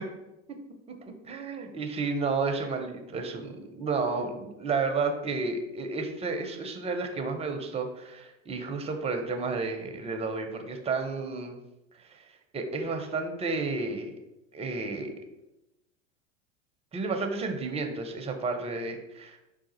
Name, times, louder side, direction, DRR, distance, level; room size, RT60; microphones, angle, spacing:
voice 1, 0.9-11.6 12.1-12.2 12.5-14.1 14.5-15.1 16.9-19.4, right 4 dB, 15° right, 5 dB, 0.4 m, -32 dB
4.7 x 2.4 x 3.9 m, 0.94 s
figure-of-eight pair, 80°, 39 cm